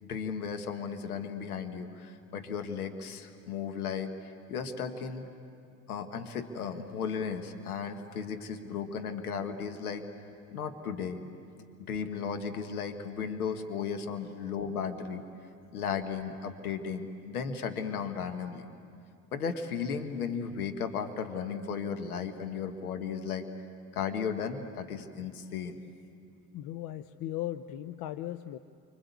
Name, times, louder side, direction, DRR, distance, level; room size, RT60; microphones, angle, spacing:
voice 1, 0.0-4.1 4.5-5.2 5.9-10.0 10.5-11.2 11.8-15.2 15.7-18.7 19.3-23.5 23.9-25.8, left 6 dB, 85° left, 7 dB, 1.4 m, -35 dB
voice 2, 26.5-28.6, left 13 dB, 55° left, 12 dB, 0.8 m, -37 dB
28.5 x 25.0 x 8.3 m, 2.4 s
hypercardioid pair, 65°, 43 cm